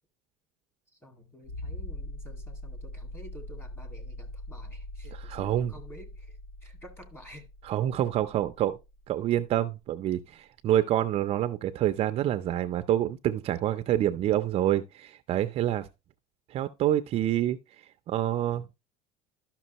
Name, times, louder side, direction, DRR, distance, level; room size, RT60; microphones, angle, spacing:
voice 1, 0.9-7.5, equal, 15° left, 2.1 m, -50 dB
sound 1, 1.4-9.9 11.4-11.5, left 1 dB, 60° left, 1.1 m, -42 dB
voice 2, 5.1-5.7 7.6-8.8 9.1-15.9 16.5-17.6 18.1-18.7, right 12 dB, 40° right, 0.5 m, -27 dB
12.0 x 6.0 x 3.0 m
cardioid pair, 145°, 15 cm